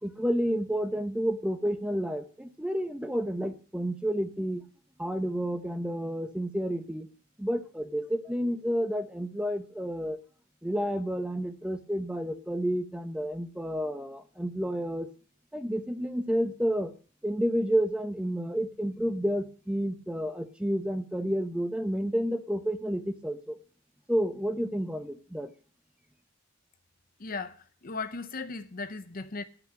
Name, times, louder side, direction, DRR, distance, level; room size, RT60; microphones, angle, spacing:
voice 1, 0.0-4.6 5.0-7.1 7.4-10.2 10.6-15.1 15.5-16.9 17.2-23.6 24.1-25.5, equal, 5° right, 0.8 m, -30 dB
voice 2, 27.2-29.4, left 4 dB, 45° left, 0.8 m, -37 dB
10.0 x 5.9 x 8.7 m
head